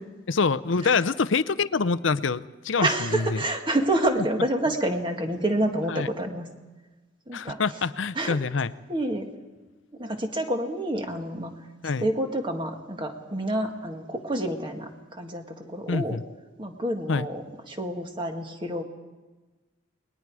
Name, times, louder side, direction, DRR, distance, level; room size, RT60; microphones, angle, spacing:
voice 1, 0.3-3.4 5.9-6.1 7.3-8.7 11.8-12.1 15.9-16.2 17.1-17.3, left 4 dB, 75° left, 15 dB, 0.6 m, -26 dB
voice 2, 2.8-6.5 7.3-7.6 8.2-8.4 8.9-9.3 10.0-11.5 12.0-16.2 16.6-17.4 17.7-18.8, right 1 dB, 25° right, 4 dB, 1.9 m, -28 dB
29.0 x 21.0 x 4.8 m, 1.2 s
head